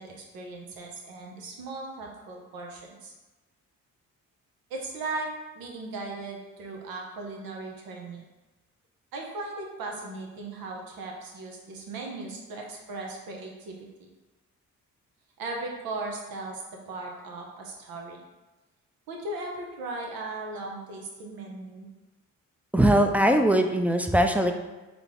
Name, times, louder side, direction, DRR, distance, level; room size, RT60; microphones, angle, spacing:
voice 1, 0.0-3.1 4.7-5.3 5.5-8.2 9.1-14.1 15.4-16.6 16.9-18.2 19.1-21.9, right 2 dB, 85° right, 0 dB, 0.9 m, -37 dB
voice 2, 22.7-24.5, right 1 dB, 5° right, 5 dB, 0.4 m, -21 dB
3.6 x 3.4 x 3.6 m, 1.1 s
supercardioid pair, 60°, 34 cm